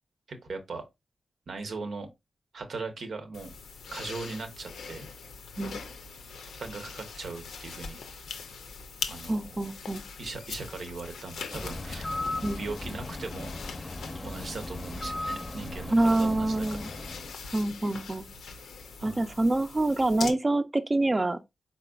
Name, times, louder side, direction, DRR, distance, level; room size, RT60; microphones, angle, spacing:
voice 1, 0.3-0.9 1.5-2.1 2.5-3.5 3.9-5.1 6.6-8.0 9.1-9.5 10.2-12.1 12.6-13.5 14.2-16.8 19.0-19.3, right 3 dB, 75° right, 0.9 m, -39 dB
sound 1, 3.3-20.3, left 5 dB, 90° left, 0.5 m, -42 dB
voice 2, 9.3-10.0 12.4-12.6 15.9-16.9 17.5-18.3 19.0-21.4, right 2 dB, 35° right, 0.6 m, -26 dB
Bird, 11.5-17.3, left 2 dB, 30° left, 0.6 m, -37 dB
4.1 x 4.0 x 2.3 m
supercardioid pair, 40°, 0 cm